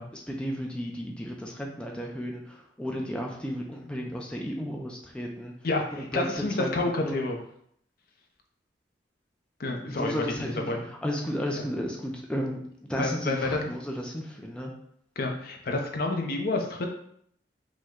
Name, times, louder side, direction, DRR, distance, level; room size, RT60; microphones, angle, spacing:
voice 1, 0.1-5.5 5.9-7.3 9.9-12.6 12.9-14.7, equal, 5° left, -1 dB, 0.4 m, -33 dB
voice 2, 5.6-7.4 9.6-10.1 10.4-10.8 13.0-13.6 15.2-16.9, left 2 dB, 50° left, 3 dB, 0.6 m, -29 dB
5.1 x 2.2 x 3.6 m, 0.69 s
head